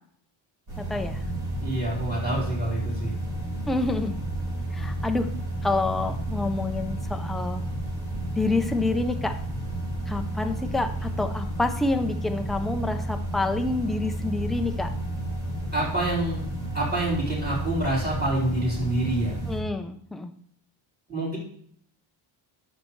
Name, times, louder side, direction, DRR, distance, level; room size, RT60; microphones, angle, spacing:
sound 1, 0.7-19.6, right 1 dB, 50° right, 4.2 m, -31 dB
voice 1, 0.8-1.2 3.7-4.2 4.7-5.3 5.6-7.6 8.4-9.3 10.1-14.9 19.5-20.3, left 2 dB, ahead, 6 dB, 0.4 m, -28 dB
voice 2, 1.6-3.1 15.7-16.5 16.7-19.4 21.1-21.4, right 1 dB, 20° right, -6 dB, 3.8 m, -27 dB
11.5 x 6.5 x 3.1 m, 0.65 s
cardioid pair, 140°, 47 cm